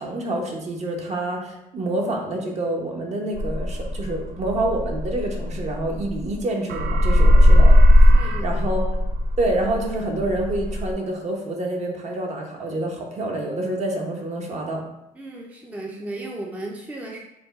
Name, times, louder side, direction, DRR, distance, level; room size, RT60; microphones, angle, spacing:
voice 1, 0.0-7.8 8.2-8.8 9.4-14.8, right 1 dB, 40° right, 1 dB, 0.9 m, -27 dB
sound 1, 3.4-6.4 6.7-10.9, left 1 dB, 65° right, 0.4 m, -17 dB
voice 2, 8.1-8.6 15.1-17.2, right 2 dB, 10° right, -1 dB, 0.5 m, -35 dB
4.5 x 2.3 x 4.0 m, 0.85 s
cardioid pair, 110°, 17 cm